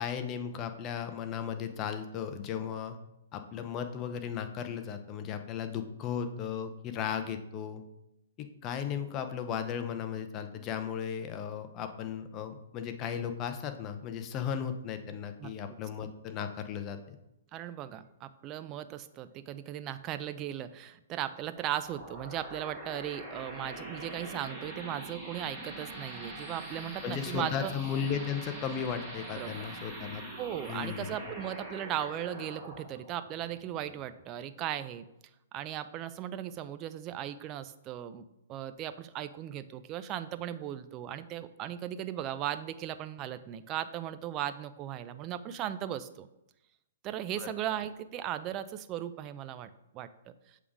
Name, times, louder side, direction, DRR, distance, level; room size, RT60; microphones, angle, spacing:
voice 1, 0.0-3.0 3.3-7.8 8.4-17.2 27.0-30.2 30.7-31.1 47.4-47.5, left 8 dB, 25° left, 8 dB, 0.6 m, -36 dB
voice 2, 17.5-27.7 29.3-29.5 30.4-35.0 35.5-46.3 47.0-50.3, right 11 dB, 30° right, 12 dB, 0.4 m, -37 dB
sound 1, 21.5-34.7, right 1 dB, 10° right, 2.0 m, -44 dB
6.9 x 3.6 x 4.8 m, 0.88 s
hypercardioid pair, 140°, 0 cm